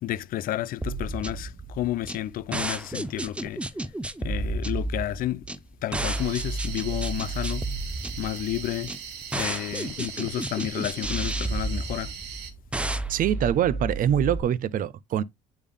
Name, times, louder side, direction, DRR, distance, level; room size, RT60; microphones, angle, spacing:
voice 1, 0.0-3.6 4.2-5.5 5.8-7.7 8.2-9.0 9.3-12.1, left 13 dB, 60° left, 0.4 m, -31 dB
sound 1, 0.8-14.4, right 2 dB, 5° right, 0.5 m, -32 dB
sound 2, 6.1-12.5, right 7 dB, 75° right, 1.4 m, -40 dB
voice 2, 13.1-15.2, right 10 dB, 55° right, 0.5 m, -24 dB
8.3 x 3.5 x 3.4 m
cardioid pair, 110°, 17 cm